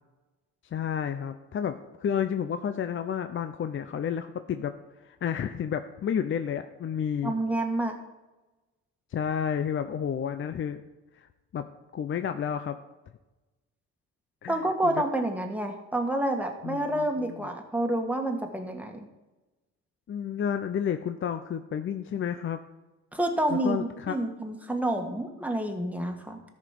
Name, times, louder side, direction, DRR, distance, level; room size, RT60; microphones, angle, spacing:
voice 1, 0.7-4.7 5.0-7.3 9.1-10.8 11.2-11.3 11.5-11.6 11.9-12.8 14.4-15.0 16.6-17.5 20.1-22.6 23.5-24.2, left 8 dB, 45° left, 9 dB, 0.6 m, -31 dB
voice 2, 7.2-8.0 14.5-19.0 23.1-26.4, right 1 dB, 5° right, 3 dB, 1.6 m, -28 dB
13.0 x 5.2 x 5.9 m, 1.1 s
cardioid pair, 90°, 30 cm